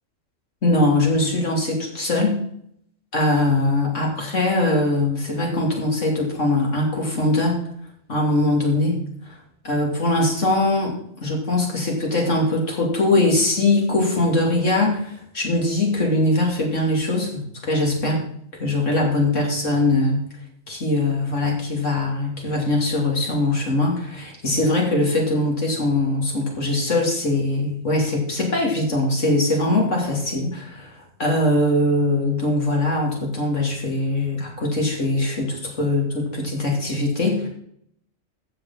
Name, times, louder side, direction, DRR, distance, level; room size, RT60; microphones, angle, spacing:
voice 1, 0.6-2.3 3.1-7.6 8.1-9.0 9.6-18.2 18.5-20.2 20.7-30.9 31.2-37.5, left 2 dB, 60° left, 0 dB, 3.2 m, -21 dB
14.5 x 6.5 x 4.2 m, 0.68 s
omnidirectional pair, 1.4 m